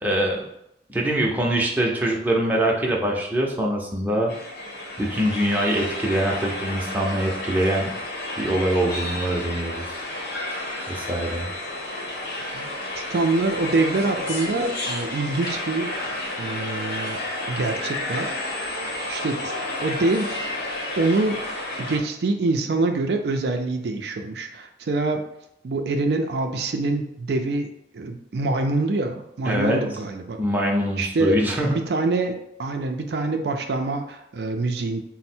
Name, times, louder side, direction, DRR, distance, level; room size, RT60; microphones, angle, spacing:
voice 1, 0.0-0.5 0.9-4.4 5.0-7.9 8.4-10.1 10.9-11.5 29.5-29.8 30.4-31.8, right 1 dB, 10° right, -2 dB, 0.6 m, -23 dB
sound 1, 4.3-22.0, left 1 dB, 70° left, 0.9 m, -31 dB
voice 2, 13.0-15.9 16.4-17.2 17.5-18.3 19.1-19.5 19.8-20.4 21.0-21.4 21.8-25.3 25.6-30.4 31.0-31.4 31.7-35.0, right 2 dB, 70° right, 5 dB, 0.4 m, -25 dB
4.2 x 2.1 x 4.2 m, 0.79 s
head